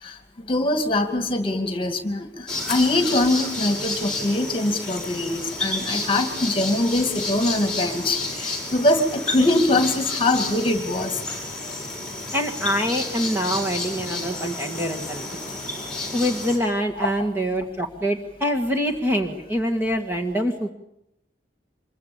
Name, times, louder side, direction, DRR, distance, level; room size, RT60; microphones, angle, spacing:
voice 1, 0.0-11.2, left 2 dB, 30° left, 7 dB, 2.4 m, -23 dB
sound 1, 2.5-16.6, left 2 dB, 5° left, 6.1 m, -31 dB
voice 2, 12.3-15.3 16.1-20.7, equal, 15° right, 2 dB, 1.8 m, -25 dB
26.0 x 23.0 x 7.2 m, 0.81 s
head